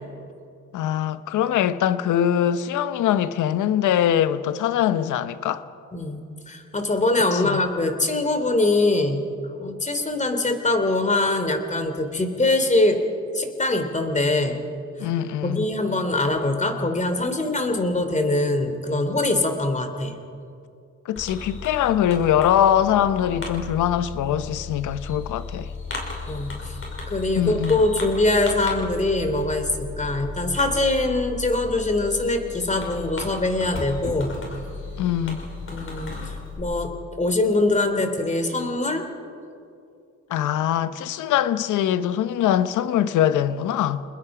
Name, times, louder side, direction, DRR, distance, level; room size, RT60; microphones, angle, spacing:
voice 1, 0.7-5.6 7.3-7.6 15.0-15.7 21.0-25.7 27.4-27.8 35.0-35.4 40.3-44.0, left 10 dB, 80° left, 1.0 m, -22 dB
voice 2, 6.5-9.2 9.6-13.0 13.3-14.6 15.4-20.2 26.3-26.8 27.1-34.4 35.7-36.2 36.6-39.0, left 2 dB, 25° left, 3.2 m, -23 dB
Fireworks, 21.2-36.6, left 3 dB, 45° left, 5.7 m, -35 dB
29.0 x 20.5 x 5.0 m
cardioid pair, 90°, 30 cm